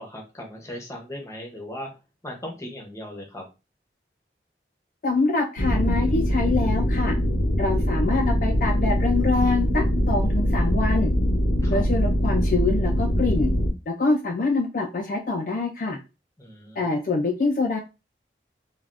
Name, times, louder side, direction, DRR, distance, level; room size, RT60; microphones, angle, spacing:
voice 1, 0.0-1.9 2.2-3.4 11.6-11.8 16.4-16.8, left 1 dB, 15° left, 1 dB, 0.7 m, -38 dB
voice 2, 5.0-7.2 7.6-11.1 11.7-13.5 13.9-16.0 16.8-17.8, left 3 dB, 50° left, 2 dB, 0.4 m, -25 dB
sound 1, 5.6-13.7, equal, 75° left, 0.8 m, -22 dB
3.3 x 2.3 x 2.5 m, 0.28 s
head